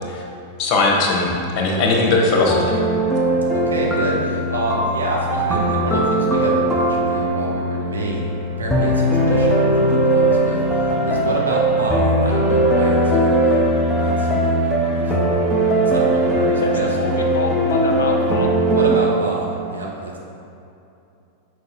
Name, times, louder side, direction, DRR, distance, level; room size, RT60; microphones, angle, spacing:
voice 1, 0.6-2.7, left 3 dB, 35° left, -1 dB, 1.2 m, -18 dB
sound 1, 2.5-19.0, right 1 dB, 5° left, 0.9 m, -19 dB
voice 2, 3.5-13.6 14.0-15.4 15.8-17.4 18.7-20.2, right 2 dB, 75° right, -2 dB, 1.1 m, -27 dB
voice 3, 16.6-18.5, left 3 dB, 65° left, 3 dB, 0.7 m, -26 dB
6.4 x 4.7 x 4.3 m, 2.7 s
figure-of-eight pair, 90°, 0 cm